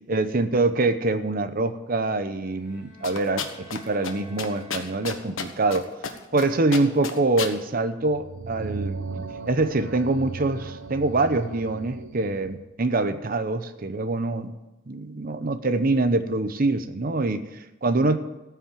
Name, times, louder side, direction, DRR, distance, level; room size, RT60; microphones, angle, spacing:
voice 1, 0.1-3.4 3.7-5.9 6.3-9.0 9.5-14.5 14.9-18.2, right 2 dB, 45° right, 9 dB, 0.8 m, -24 dB
sound 1, 2.3-5.6, right 1 dB, 5° right, 5.4 m, -51 dB
sound 2, 3.0-3.8 4.0-4.1 4.4-5.8 6.0-6.5 6.7-7.5, left 6 dB, 80° left, 1.3 m, -30 dB
sound 3, 8.1-12.7, right 4 dB, 70° right, 0.9 m, -36 dB
14.5 x 5.8 x 9.2 m, 1.0 s
head